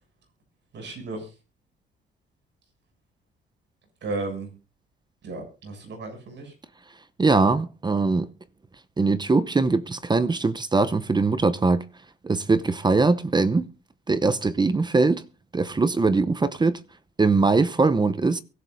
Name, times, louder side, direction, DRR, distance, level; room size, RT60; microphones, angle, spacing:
voice 1, 0.7-1.3 4.0-4.5 5.2-6.5, right 3 dB, 65° right, 7.4 m, -34 dB
voice 2, 7.2-8.3 9.0-11.8 12.2-13.7 14.1-15.2 15.5-16.8 17.2-18.4, right 3 dB, 20° right, 0.8 m, -21 dB
23.5 x 11.5 x 2.7 m
cardioid pair, 90°, 20 cm